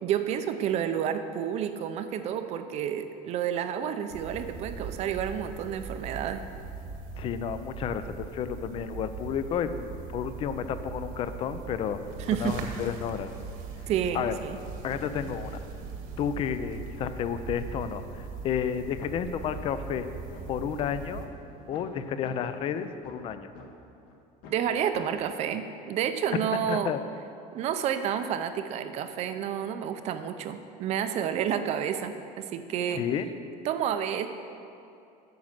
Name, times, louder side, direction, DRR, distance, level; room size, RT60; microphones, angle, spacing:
voice 1, 0.0-6.4 12.2-12.6 13.9-14.6 24.5-26.9 27.5-33.0 33.6-34.3, right 9 dB, 40° right, 9 dB, 0.5 m, -30 dB
sound 1, 4.1-21.3, right 5 dB, 60° right, 1.3 m, -40 dB
voice 2, 7.2-12.0 12.3-13.3 14.1-14.3 14.8-15.6 16.2-20.0 20.5-21.3 21.7-23.5 26.7-27.0 32.9-33.3, left 8 dB, 30° left, 11 dB, 0.4 m, -31 dB
sound 2, 10.6-22.9, right 2 dB, 75° right, 1.7 m, -51 dB
sound 3, 19.0-19.2 19.5-19.6 20.0-20.9 21.3-21.4 21.7-21.9 22.2-22.3 22.7-23.7 24.1-24.2 24.4-24.6 24.9-25.1, left 3 dB, 70° left, 1.6 m, -47 dB
9.3 x 6.2 x 7.4 m, 2.6 s
cardioid pair, 175°, 18 cm